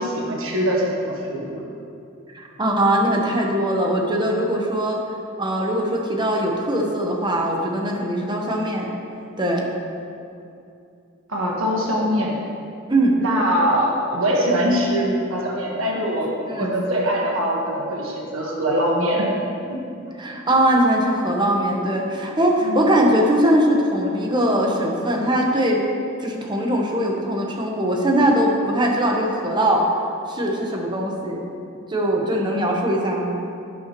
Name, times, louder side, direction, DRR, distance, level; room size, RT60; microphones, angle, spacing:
voice 1, 0.0-1.6 11.3-12.4 13.2-19.3 19.7-19.8 22.6-22.9, equal, 70° right, -2 dB, 1.4 m, -22 dB
voice 2, 2.3-8.9 9.4-9.6 12.9-13.2 15.9-16.1 16.5-16.8 20.2-25.8 26.2-29.9 30.3-31.5 31.9-33.4, right 1 dB, 20° right, 0 dB, 1.0 m, -21 dB
11.0 x 10.0 x 3.1 m, 2.6 s
head